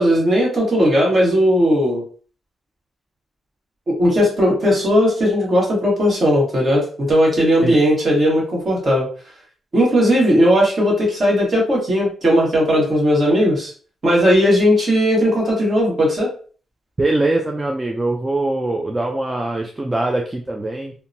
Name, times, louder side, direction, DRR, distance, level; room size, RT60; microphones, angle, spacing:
voice 1, 0.0-2.0 3.9-9.1 9.7-13.7 14.0-16.3, equal, 40° right, -3 dB, 1.4 m, -17 dB
voice 2, 17.0-20.9, right 2 dB, 15° right, 2 dB, 0.3 m, -22 dB
2.8 x 2.1 x 2.6 m, 0.41 s
cardioid pair, 105°, 0 cm